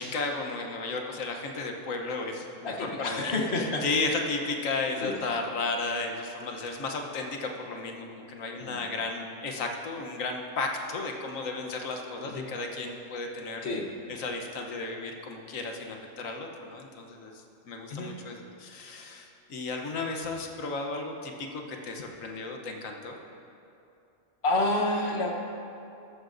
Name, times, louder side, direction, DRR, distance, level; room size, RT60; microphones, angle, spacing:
voice 1, 0.0-13.7 14.1-23.2, left 3 dB, 85° left, 2 dB, 1.4 m, -34 dB
voice 2, 2.6-3.9 5.0-5.1 8.6-8.8 12.2-12.5 13.6-14.1 17.9-18.1 24.4-25.3, left 2 dB, 55° left, 1 dB, 1.3 m, -29 dB
14.0 x 12.5 x 2.6 m, 2.8 s
omnidirectional pair, 1.3 m